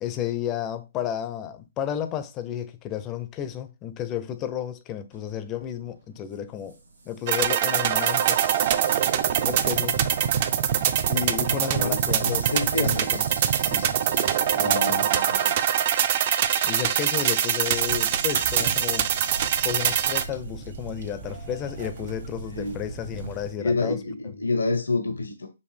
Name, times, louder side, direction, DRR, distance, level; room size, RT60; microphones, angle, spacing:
voice 1, 0.0-6.8 7.1-8.4 9.4-10.2 11.1-13.3 13.6-14.0 14.6-15.0 16.6-19.4 19.6-24.0, left 10 dB, 20° left, 0.4 m, -32 dB
sound 1, 5.1-23.3, right 3 dB, 90° right, 1.3 m, -45 dB
sound 2, 7.3-20.2, right 9 dB, 40° right, 0.5 m, -23 dB
voice 2, 11.5-13.1 14.5-15.6 22.5-22.8 23.6-25.5, left 3 dB, 85° left, 0.8 m, -28 dB
sound 3, 17.7-23.6, right 4 dB, 60° right, 1.5 m, -37 dB
5.1 x 2.5 x 3.3 m
hypercardioid pair, 145°, 0 cm